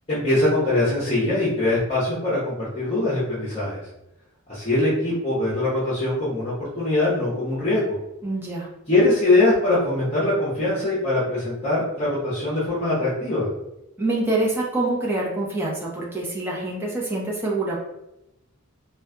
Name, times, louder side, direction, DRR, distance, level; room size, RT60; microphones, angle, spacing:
voice 1, 0.1-3.8 4.5-8.0 8.9-13.5, left 2 dB, 30° left, -8 dB, 0.9 m, -22 dB
voice 2, 8.2-8.7 14.0-17.8, right 2 dB, 10° right, -5 dB, 0.8 m, -25 dB
4.2 x 2.5 x 2.2 m, 0.88 s
head